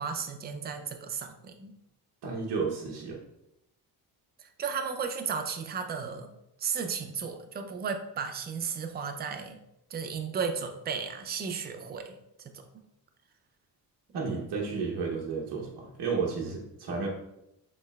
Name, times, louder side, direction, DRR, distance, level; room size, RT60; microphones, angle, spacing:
voice 1, 0.0-1.7 4.4-6.3 6.6-9.6 9.9-12.7, right 6 dB, 25° right, 5 dB, 0.3 m, -34 dB
voice 2, 2.2-3.2 14.1-17.1, right 5 dB, 65° right, -3 dB, 0.9 m, -32 dB
6.5 x 3.2 x 2.3 m, 0.85 s
cardioid pair, 155°, 42 cm